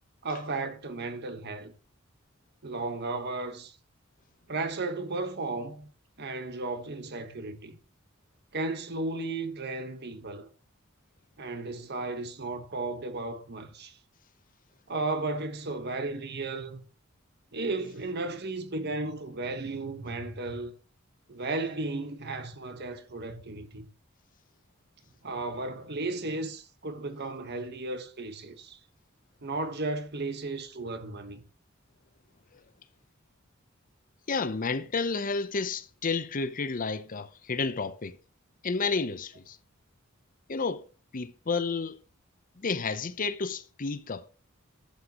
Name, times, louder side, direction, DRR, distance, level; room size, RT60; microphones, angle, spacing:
voice 1, 0.2-1.7 2.6-3.7 4.5-5.9 6.2-7.8 8.5-10.5 11.4-14.0 14.9-16.8 17.5-20.7 21.3-23.9 25.2-28.8 29.4-31.4, right 2 dB, 50° right, 1.3 m, -34 dB
voice 2, 34.3-38.2 38.6-39.6 40.5-40.8 41.1-42.0 42.6-44.2, left 4 dB, 40° left, 0.7 m, -31 dB
11.5 x 8.4 x 3.0 m
head